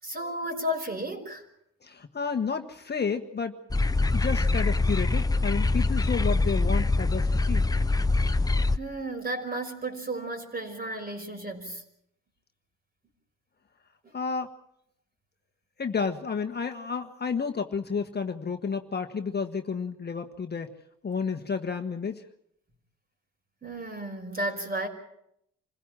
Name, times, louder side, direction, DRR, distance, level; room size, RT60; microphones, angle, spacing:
voice 1, 0.0-1.4 8.8-11.8 14.0-14.1 23.6-24.9, right 1 dB, 30° right, 5 dB, 5.5 m, -33 dB
voice 2, 1.8-3.6 4.1-7.6 14.1-14.5 15.8-20.7 21.0-22.2, left 5 dB, 35° left, 6 dB, 1.3 m, -31 dB
sound 1, 3.7-8.8, left 2 dB, 10° left, 0.8 m, -24 dB
27.0 x 16.5 x 7.5 m, 0.76 s
cardioid pair, 90°, 30 cm